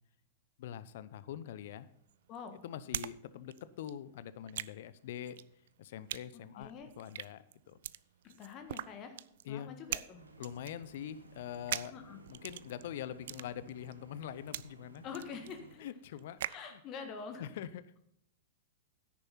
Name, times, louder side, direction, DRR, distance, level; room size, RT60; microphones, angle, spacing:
voice 1, 0.6-1.9 2.6-5.4 5.8-6.7 7.0-7.8 9.4-9.7 10.4-11.9 12.3-15.0 15.8-16.4 16.7-16.8 17.4-18.0, left 10 dB, 55° left, 15 dB, 0.6 m, -44 dB
sound 1, 1.7-3.2 3.4-16.7, right 12 dB, 60° right, 0.4 m, -43 dB
voice 2, 2.3-2.6 6.3-6.9 8.2-9.2 9.5-10.3 11.9-12.2 15.0-15.8 16.5-17.4, left 6 dB, 35° left, 7 dB, 1.6 m, -46 dB
sound 2, 10.2-15.8, right 4 dB, 85° right, 1.5 m, -57 dB
10.0 x 9.9 x 4.2 m, 0.75 s
figure-of-eight pair, 100°, 0 cm